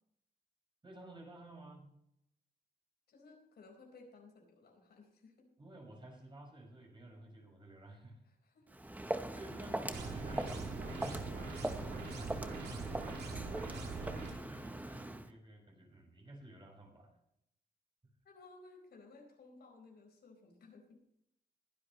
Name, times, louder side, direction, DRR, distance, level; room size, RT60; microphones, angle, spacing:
voice 1, 0.8-1.9 5.6-8.2 9.2-17.2, right 1 dB, 30° right, 0 dB, 6.0 m, -53 dB
voice 2, 3.1-5.5 8.2-8.7 18.2-21.0, left 3 dB, 85° left, 2 dB, 4.5 m, -58 dB
Walk footsteps, 8.7-15.3, right 1 dB, 10° right, 0.9 m, -41 dB
sound 1, 9.9-14.3, right 3 dB, 90° right, 2.8 m, -43 dB
21.5 x 10.5 x 3.1 m, 0.77 s
wide cardioid pair, 115°, 16 cm